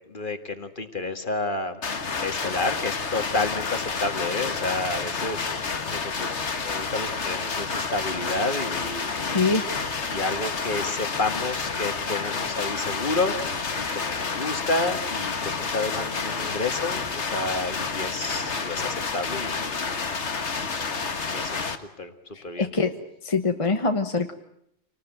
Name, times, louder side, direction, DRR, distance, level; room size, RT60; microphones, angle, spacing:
voice 1, 0.1-1.8 2.2-9.6 10.1-20.6 21.2-21.6 22.0-22.1 22.4-22.7, left 2 dB, 45° left, 8 dB, 2.0 m, -30 dB
sound 1, 1.8-21.8, left 4 dB, 70° left, 1.8 m, -29 dB
voice 2, 9.2-9.6 22.3-22.9 23.2-24.3, left 3 dB, 30° left, 6 dB, 1.3 m, -24 dB
27.0 x 19.5 x 9.1 m, 0.77 s
omnidirectional pair, 1.2 m